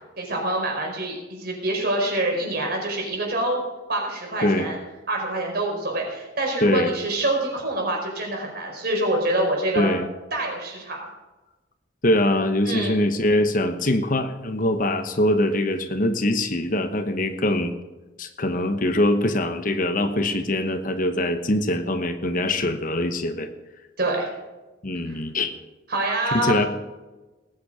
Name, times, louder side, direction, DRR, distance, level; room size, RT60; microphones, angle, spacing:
voice 1, 0.2-3.6 3.9-4.8 5.1-9.9 10.3-11.0 12.7-13.0 24.0-24.3 25.1-25.2 25.9-26.7, right 1 dB, 55° right, 0 dB, 4.7 m, -26 dB
voice 2, 6.6-6.9 9.7-10.1 12.0-17.7 18.2-23.5 24.8-25.5 26.3-26.7, left 1 dB, 45° left, 8 dB, 1.1 m, -23 dB
19.0 x 9.5 x 5.0 m, 1.1 s
head